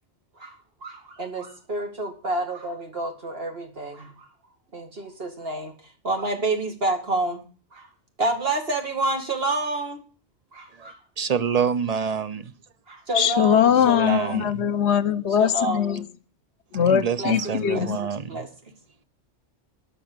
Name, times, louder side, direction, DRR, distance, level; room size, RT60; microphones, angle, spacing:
voice 1, 0.4-4.3 4.7-5.7 6.0-7.4 7.7-7.9 8.2-10.0 10.5-11.0 11.5-11.6 12.9-14.5 15.4-16.1 17.2-18.5, right 2 dB, 55° right, 2.5 m, -29 dB
voice 2, 10.8-12.5 13.8-14.7 16.7-18.5, right 7 dB, 35° right, 0.8 m, -27 dB
voice 3, 13.1-16.1 16.7-18.0, left 9 dB, 70° left, 1.0 m, -21 dB
12.5 x 6.0 x 9.6 m
omnidirectional pair, 1.2 m